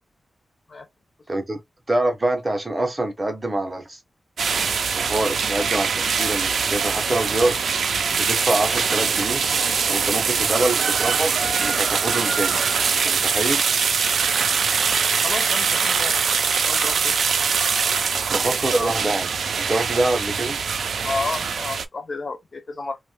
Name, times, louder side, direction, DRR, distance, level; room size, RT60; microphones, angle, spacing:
voice 1, 1.3-1.6 1.9-4.0 4.9-7.6 8.1-9.4 9.9-11.3 11.6-12.6 12.9-13.6 18.3-19.3 19.6-20.6, right 2 dB, 20° right, 0.6 m, -25 dB
sound 1, 4.4-21.9, right 6 dB, 80° right, 0.3 m, -22 dB
voice 2, 15.2-16.2 16.6-17.2 21.0-23.0, left 3 dB, 40° left, 0.3 m, -31 dB
2.9 x 2.0 x 3.0 m
wide cardioid pair, 170°, 0 cm